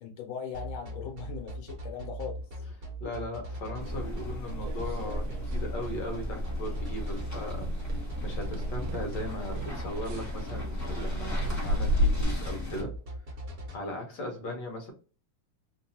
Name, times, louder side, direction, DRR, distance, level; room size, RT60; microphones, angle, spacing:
voice 1, 0.0-2.7, left 7 dB, 85° left, 3 dB, 1.7 m, -39 dB
sound 1, 0.5-13.8, right 1 dB, 40° right, 1.4 m, -39 dB
voice 2, 3.0-5.3 5.5-7.7 8.2-12.9 13.7-14.9, left 1 dB, 60° left, 2 dB, 1.6 m, -38 dB
sound 2, 3.8-12.8, equal, 10° left, 0.9 m, -35 dB
sound 3, 4.2-5.6 5.9-6.3 6.6-6.7 7.2-12.2, left 1 dB, 80° right, 1.4 m, -34 dB
3.8 x 2.6 x 2.8 m, 0.38 s
omnidirectional pair, 2.2 m